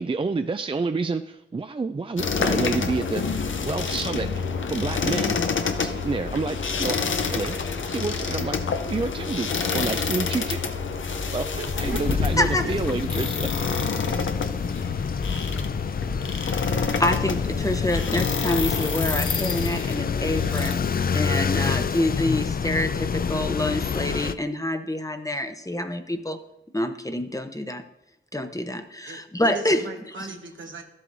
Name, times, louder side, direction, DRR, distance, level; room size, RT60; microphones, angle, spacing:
voice 1, 0.0-4.4 4.7-7.6 7.9-13.5, right 4 dB, 25° right, 9 dB, 0.3 m, -29 dB
sound 1, 2.2-20.7, left 5 dB, 90° left, 0.6 m, -28 dB
voice 2, 11.6-12.3 12.6-12.7 29.0-30.8, right 3 dB, 80° right, 4 dB, 1.1 m, -38 dB
sound 2, 11.8-24.4, left 6 dB, 50° left, 0.4 m, -28 dB
voice 3, 12.4-12.7 16.3-16.6 17.0-20.8 21.1-26.4 26.7-27.8 28.3-29.8, left 1 dB, 15° left, 8 dB, 0.8 m, -27 dB
12.5 x 7.7 x 2.6 m, 0.88 s
cardioid pair, 45°, 19 cm